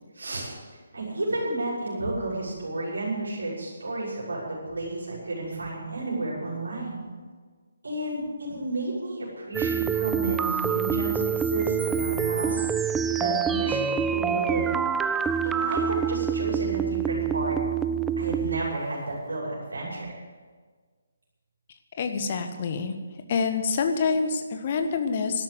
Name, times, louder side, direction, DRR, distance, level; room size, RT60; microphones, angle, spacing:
voice 1, 0.1-7.0 7.8-14.7 15.1-15.2 15.4-17.6 18.2-20.1, right 2 dB, 65° right, -5 dB, 6.1 m, -32 dB
sound 1, 9.5-18.8, right 7 dB, 5° right, 0.4 m, -26 dB
voice 2, 22.0-22.9 23.3-25.4, left 5 dB, 35° left, 7 dB, 1.4 m, -26 dB
12.5 x 12.0 x 8.0 m, 1.5 s
figure-of-eight pair, 140°, 0 cm